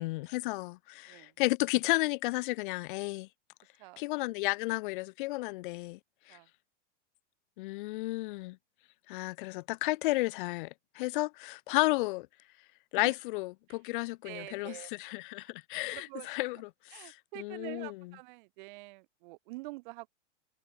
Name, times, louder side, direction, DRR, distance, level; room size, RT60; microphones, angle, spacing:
voice 1, 0.0-3.3 4.0-6.0 6.3-6.4 7.6-8.6 9.1-12.3 12.9-18.1, left 21 dB, 45° left, 0.5 m, -33 dB
voice 2, 14.2-14.9 15.9-16.3 16.9-20.1, right 24 dB, 45° right, 0.6 m, -46 dB
supercardioid pair, 140°, 36 cm